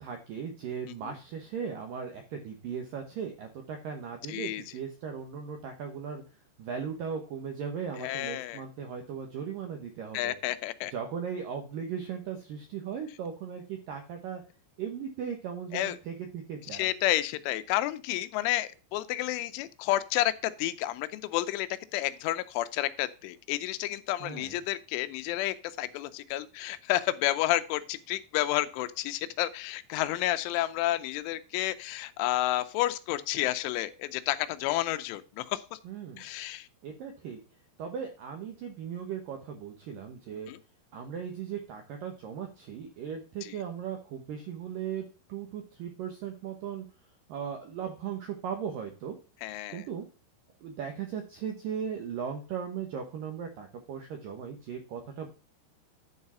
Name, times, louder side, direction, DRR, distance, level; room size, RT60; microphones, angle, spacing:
voice 1, 0.0-6.2 6.6-10.4 10.9-14.4 14.8-16.9 24.2-24.6 35.8-36.2 36.8-37.4 37.8-40.5 40.9-46.9 47.3-49.2 49.7-50.1 50.6-55.3, right 7 dB, 80° right, 4 dB, 2.0 m, -37 dB
voice 2, 4.3-4.6 8.0-8.6 10.1-10.9 15.7-16.0 16.7-35.8 36.2-36.7 40.5-40.6 43.4-43.6 49.4-49.8, left 15 dB, 90° left, 12 dB, 3.2 m, -30 dB
11.0 x 4.8 x 5.5 m, 0.34 s
omnidirectional pair, 5.4 m